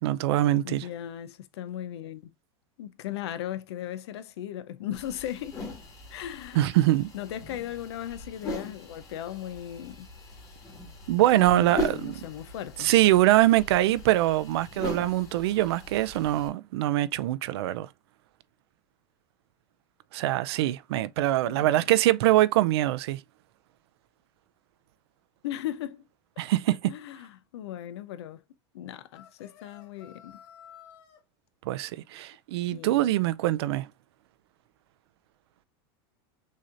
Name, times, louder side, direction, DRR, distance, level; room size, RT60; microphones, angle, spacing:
voice 1, 0.0-0.9 6.5-7.1 11.1-12.2 12.8-17.9 20.1-23.2 26.4-26.9 31.7-33.9, right 15 dB, 75° right, 0.4 m, -23 dB
voice 2, 0.6-2.3 2.8-5.6 6.1-6.7 7.1-10.1 11.3-12.9 21.5-21.7 25.4-26.0 26.9-28.4 28.7-30.4 32.7-33.1, left 11 dB, 85° left, 0.6 m, -37 dB
sound 1, 4.9-16.5, left 1 dB, 25° left, 1.8 m, -40 dB
sound 2, 29.1-31.2, left 8 dB, 55° left, 1.1 m, -52 dB
6.3 x 2.8 x 2.5 m
supercardioid pair, 145°, 13 cm